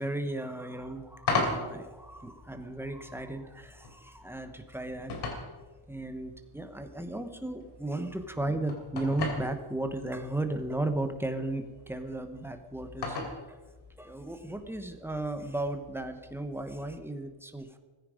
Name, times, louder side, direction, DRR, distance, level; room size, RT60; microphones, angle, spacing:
voice 1, 0.0-5.1 5.9-13.6 14.0-17.8, right 2 dB, 5° right, 7 dB, 1.0 m, -35 dB
sound 1, 0.7-17.0, left 3 dB, 65° left, 3.3 m, -40 dB
17.5 x 15.0 x 5.0 m, 1.3 s
wide cardioid pair, 180°, 45 cm